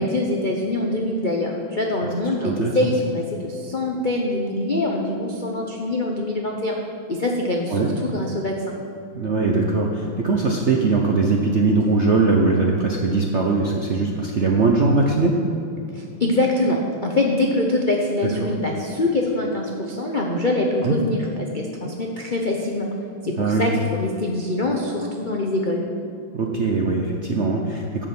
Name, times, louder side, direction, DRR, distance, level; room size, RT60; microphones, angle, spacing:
voice 1, 0.0-6.8 7.1-8.7 15.9-22.9 23.2-25.9, left 2 dB, 75° left, 0 dB, 0.4 m, -24 dB
voice 2, 2.4-2.7 7.7-7.9 9.1-15.3 18.4-18.5 20.8-20.9 23.4-23.6 26.3-28.1, right 3 dB, 65° right, 0 dB, 0.7 m, -20 dB
11.0 x 6.2 x 7.6 m, 2.7 s
omnidirectional pair, 2.3 m